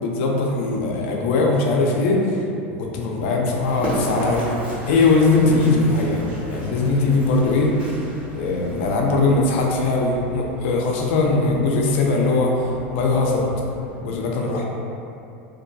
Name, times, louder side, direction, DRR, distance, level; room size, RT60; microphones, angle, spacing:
voice 1, 0.0-2.4 2.7-6.2 6.5-7.7 8.3-13.5 14.0-14.6, left 3 dB, 65° left, 0 dB, 0.4 m, -20 dB
Run, 3.5-14.0, equal, 20° right, 0.8 m, -35 dB
2.3 x 2.1 x 2.6 m, 2.7 s
hypercardioid pair, 105°, 7 cm